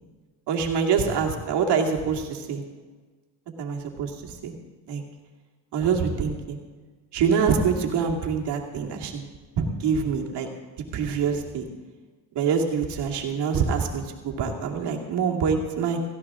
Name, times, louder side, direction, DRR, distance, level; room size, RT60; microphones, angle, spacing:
voice 1, 0.5-2.6 3.6-4.1 4.4-4.5 4.9-5.0 5.7-6.6 7.1-9.2 9.6-10.5 10.9-11.7 12.3-16.0, right 6 dB, 75° right, 1 dB, 2.3 m, -25 dB
17.5 x 14.5 x 3.7 m, 1.4 s
cardioid pair, 90°, 41 cm